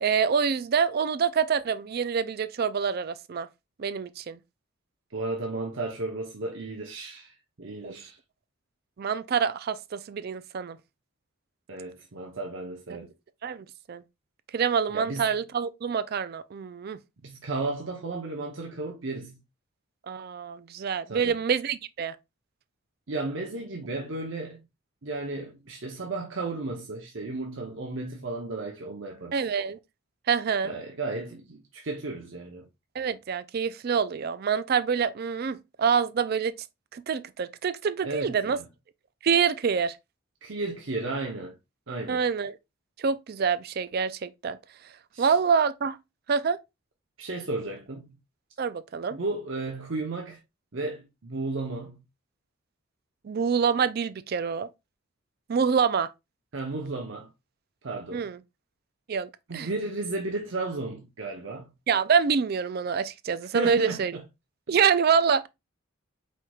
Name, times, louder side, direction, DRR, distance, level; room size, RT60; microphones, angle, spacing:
voice 1, 0.0-3.5 3.8-4.4 7.8-7.9 9.0-10.8 13.4-14.0 14.5-17.0 20.1-22.2 29.3-29.8 30.3-30.7 33.0-36.5 36.9-38.6 39.2-40.0 42.1-42.6 43.0-44.6 45.2-46.0 46.3-46.6 48.6-49.2 53.2-54.7 55.5-56.1 58.1-58.4 59.1-59.7 61.9-64.2 64.7-65.5, right 6 dB, 45° right, 0.4 m, -26 dB
voice 2, 5.1-7.3 7.6-8.2 11.7-13.1 14.9-15.4 17.2-19.4 21.1-21.4 23.1-24.6 25.0-29.4 30.6-32.7 38.0-38.6 40.4-41.5 41.9-42.2 45.1-45.3 47.2-48.1 49.1-50.4 50.7-52.0 56.5-57.3 57.8-58.2 59.5-61.7 63.5-64.2, right 2 dB, 65° right, 0.8 m, -34 dB
4.7 x 4.4 x 2.3 m
head